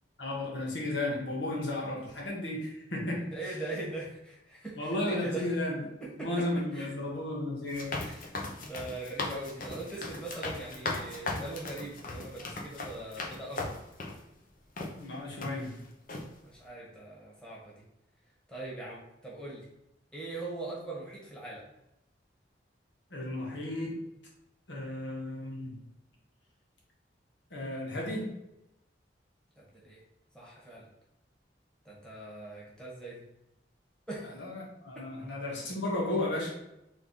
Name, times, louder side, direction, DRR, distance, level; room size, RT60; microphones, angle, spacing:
voice 1, 0.2-3.6 4.8-5.8 6.2-8.2 15.0-15.8 23.1-24.0 24.7-25.7 27.5-28.3 34.2-36.6, left 1 dB, 75° left, -3 dB, 1.4 m, -34 dB
voice 2, 3.2-5.5 6.0-6.3 6.7-6.9 8.6-13.7 16.4-17.8 18.5-19.6 20.1-21.6 29.6-30.0 30.3-30.9 31.8-33.2 34.1-34.3, right 2 dB, 5° left, -6 dB, 1.4 m, -41 dB
sound 1, 7.7-14.2 14.8-14.9 15.4-15.8 16.1-16.3, left 2 dB, 50° left, 0.8 m, -38 dB
3.6 x 3.3 x 4.0 m, 0.87 s
head